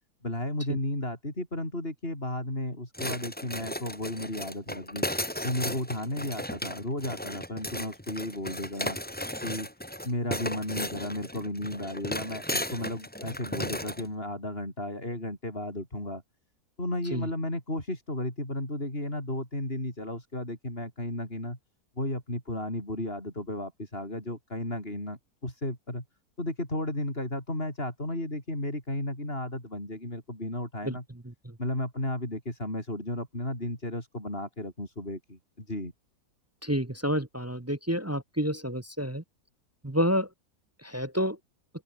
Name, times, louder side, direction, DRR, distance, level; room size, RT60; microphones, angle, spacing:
voice 1, 0.2-5.0 5.4-9.0 9.4-9.7 10.0-16.2 16.8-21.6 22.0-26.0 26.4-31.0 31.6-35.9, left 1 dB, 35° left, 8.0 m, -34 dB
sound 1, 2.9-14.1, left 1 dB, 5° left, 2.6 m, -35 dB
voice 2, 36.6-39.2 39.8-40.3 40.8-41.4, equal, 10° right, 0.8 m, -29 dB
open air
omnidirectional pair, 1.7 m